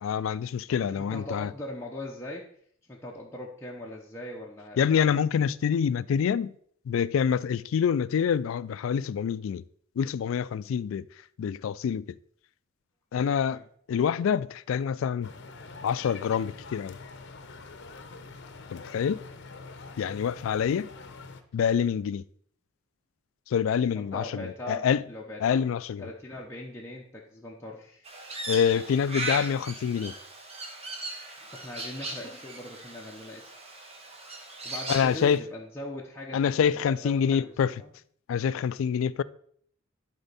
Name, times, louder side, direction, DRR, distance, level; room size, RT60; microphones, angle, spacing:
voice 1, 0.0-1.5 4.8-6.5 6.9-9.6 10.0-11.1 11.4-12.1 13.1-13.6 13.9-15.3 15.8-17.0 18.7-19.2 20.0-20.9 21.5-22.2 23.5-25.0 25.4-26.1 28.5-30.1 34.9-35.4 36.3-37.7 38.3-39.2, left 7 dB, 70° left, 0.3 m, -26 dB
voice 2, 0.7-2.5 2.9-5.2 13.5-13.6 23.9-25.7 26.0-28.1 31.4-33.5 34.6-37.5 37.8-37.9, left 1 dB, 10° left, 0.8 m, -40 dB
sound 1, 15.2-21.4, left 4 dB, 55° left, 0.7 m, -45 dB
Crow, 28.0-35.4, right 2 dB, 30° right, 1.1 m, -38 dB
11.5 x 4.5 x 4.1 m
head